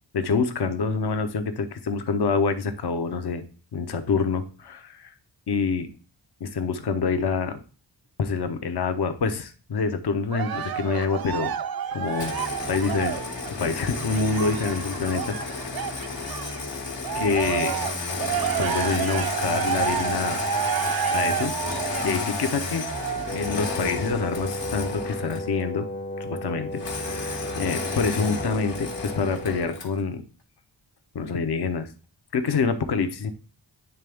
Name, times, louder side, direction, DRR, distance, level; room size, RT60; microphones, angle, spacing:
voice 1, 0.1-3.4 3.7-5.1 5.5-5.9 6.4-7.6 8.2-11.5 11.9-12.3 12.7-13.2 13.6-15.8 17.1-17.8 18.6-20.4 21.1-21.5 22.0-22.8 23.3-25.9 26.2-30.2 31.1-31.9 32.3-33.3, left 5 dB, 65° left, 8 dB, 0.8 m, -26 dB
Cheering, 10.3-16.6 17.0-23.6 24.2-24.3, right 9 dB, 60° right, 0.5 m, -30 dB
Engine starting, 12.1-25.5 26.8-30.0, left 3 dB, 80° left, 1.4 m, -32 dB
Wind instrument woodwind instrument, 23.3-29.8, left 1 dB, 25° left, 0.5 m, -35 dB
9.2 x 3.4 x 3.5 m, 0.37 s
cardioid pair, 65°, 43 cm